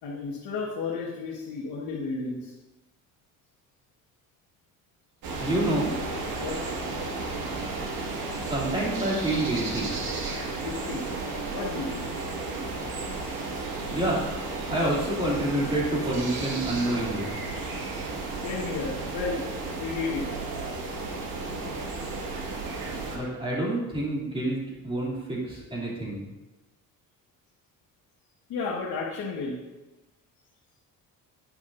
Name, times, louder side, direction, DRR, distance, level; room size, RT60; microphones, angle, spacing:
voice 1, 0.0-2.5 6.4-6.6 10.6-11.0 11.5-12.0 18.4-19.4 19.8-20.5 28.5-29.6, left 4 dB, 75° left, -5 dB, 1.6 m, -32 dB
sound 1, 5.2-23.2, right 3 dB, 70° right, 1.9 m, -33 dB
voice 2, 5.4-5.9 8.4-9.9 13.9-14.2 14.7-17.3 23.1-26.2, right 1 dB, 15° right, -6 dB, 2.7 m, -28 dB
11.0 x 9.0 x 2.6 m, 1.1 s
cardioid pair, 165°, 36 cm